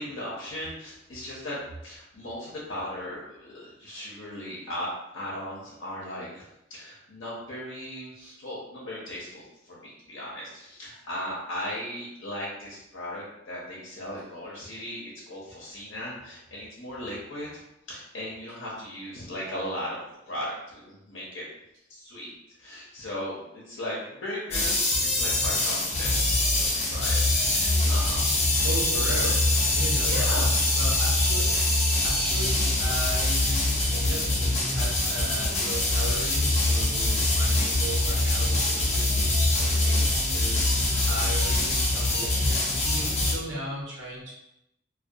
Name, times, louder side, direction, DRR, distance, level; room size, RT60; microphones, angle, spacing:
voice 1, 0.0-6.4 6.7-17.5 17.9-20.0 20.3-21.5 21.9-22.3 22.6-24.9 25.1-27.2 27.5-28.2 30.0-30.5, left 1 dB, 80° left, -5 dB, 0.6 m, -37 dB
sound 1, 24.5-43.3, left 2 dB, 35° left, 0.5 m, -24 dB
voice 2, 28.6-30.3 30.8-31.6 32.0-40.0 40.3-44.3, right 1 dB, 75° right, -5 dB, 0.9 m, -36 dB
2.2 x 2.2 x 2.6 m, 0.84 s
head